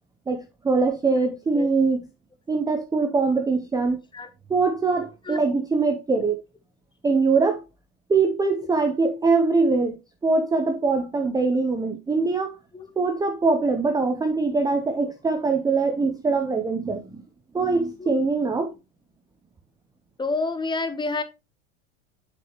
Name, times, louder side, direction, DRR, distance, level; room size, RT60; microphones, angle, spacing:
voice 1, 0.3-2.1 2.5-4.0 4.5-6.4 7.0-7.6 8.1-10.0 10.2-12.6 13.0-17.2 17.5-18.7, right 4 dB, 10° right, 0.6 m, -22 dB
voice 2, 20.2-21.2, left 3 dB, 10° left, 0.9 m, -28 dB
7.4 x 6.0 x 2.9 m
hypercardioid pair, 100°, 38 cm